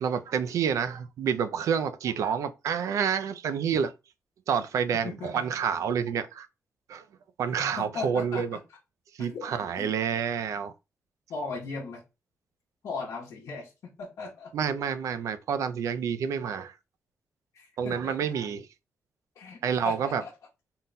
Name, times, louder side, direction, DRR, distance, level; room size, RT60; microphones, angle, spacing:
voice 1, 0.0-3.9 4.5-6.5 6.9-7.0 7.4-8.6 9.2-10.7 14.5-16.7 17.8-18.7 19.6-20.2, right 7 dB, 80° right, 0.4 m, -28 dB
voice 2, 5.0-5.4 7.6-8.6 9.2-9.9 11.3-12.0 12.8-13.7 14.0-14.5 17.5-18.1 19.4-20.3, left 4 dB, 75° left, 0.9 m, -38 dB
3.8 x 2.2 x 3.9 m
wide cardioid pair, 175°, 5 cm